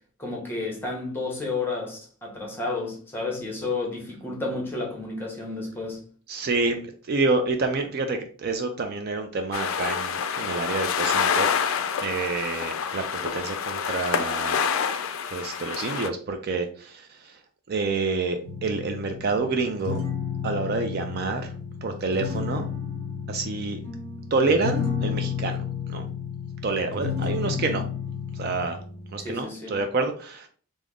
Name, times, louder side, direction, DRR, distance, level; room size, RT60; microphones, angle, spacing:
voice 1, 0.2-6.0 27.4-27.8 29.2-29.8, left 3 dB, 10° left, 0.8 m, -31 dB
voice 2, 6.3-6.8 7.1-11.5 12.0-14.6 15.2-17.4 17.7-20.0 20.4-21.5 21.8-22.7 23.3-23.8 24.3-25.6 25.9-26.1 26.6-27.8 28.3-28.8 29.1-30.5, right 3 dB, 45° right, 0.4 m, -28 dB
sound 1, 9.5-16.1, left 7 dB, 65° left, 0.3 m, -27 dB
sound 2, 18.4-29.3, left 7 dB, 90° right, 0.9 m, -32 dB
3.5 x 2.1 x 3.5 m
head